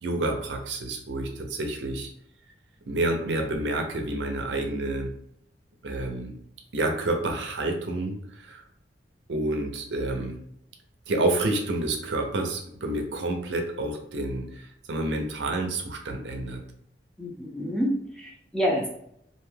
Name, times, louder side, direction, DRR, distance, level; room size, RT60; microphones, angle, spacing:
voice 1, 0.0-2.1 2.9-5.1 5.8-6.3 6.7-8.6 9.3-10.4 11.1-16.6, right 2 dB, 90° right, 4 dB, 0.6 m, -29 dB
voice 2, 17.2-19.0, equal, 5° left, -2 dB, 0.5 m, -28 dB
2.6 x 2.2 x 3.2 m, 0.71 s
head